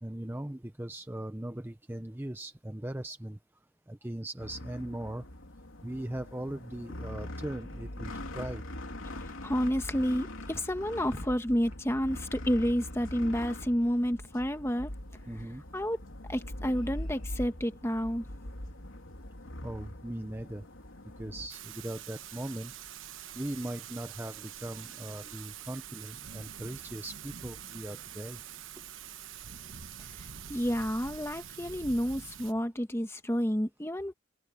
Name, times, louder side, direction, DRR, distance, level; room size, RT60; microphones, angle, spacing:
voice 1, 0.0-3.4 3.9-5.2 5.8-8.6 15.3-15.6 19.6-20.7 21.2-22.7 23.3-28.4, right 1 dB, 10° right, 0.6 m, -39 dB
sound 1, 4.4-21.5, left 1 dB, 85° left, 3.3 m, -42 dB
voice 2, 9.4-14.9 15.7-16.0 16.3-18.2 30.5-34.1, equal, 15° left, 1.3 m, -30 dB
Thunder / Rain, 21.5-32.5, right 9 dB, 75° right, 1.1 m, -45 dB
head